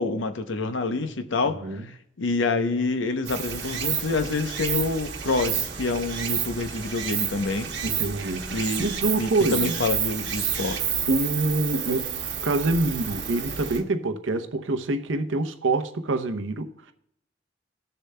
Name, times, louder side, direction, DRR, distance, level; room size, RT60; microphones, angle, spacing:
voice 1, 0.0-1.9 2.2-7.7 8.5-8.9 9.1-10.8, left 3 dB, 75° left, 0.7 m, -27 dB
voice 2, 1.5-1.9 7.8-9.8 11.1-16.9, right 2 dB, 80° right, 0.7 m, -26 dB
Stream, 3.2-13.8, right 8 dB, 60° right, 1.1 m, -30 dB
19.0 x 6.7 x 2.2 m
head